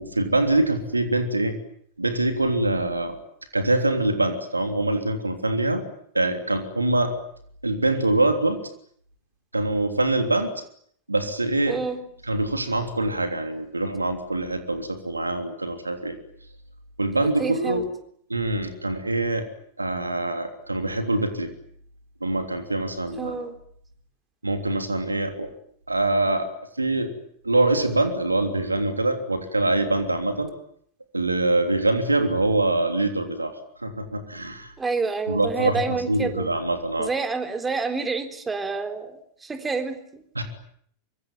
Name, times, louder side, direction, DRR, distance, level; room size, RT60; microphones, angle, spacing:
voice 1, 0.0-1.6 2.0-3.2 3.5-5.8 6.1-7.1 7.6-8.6 9.5-10.5 11.1-11.8 12.3-16.2 17.0-17.8 18.3-19.5 19.8-21.5 22.2-23.3 24.4-25.5 25.9-26.5 26.8-27.1 27.4-30.5 31.1-34.7 35.3-37.1 40.3-40.4, right 2 dB, 80° right, 8 dB, 3.3 m, -24 dB
voice 2, 11.7-12.0 17.4-17.8 23.2-23.5 34.8-36.5 37.0-40.2, right 4 dB, 15° right, 8 dB, 3.9 m, -28 dB
25.0 x 24.0 x 9.2 m, 0.65 s
figure-of-eight pair, 90°, 0 cm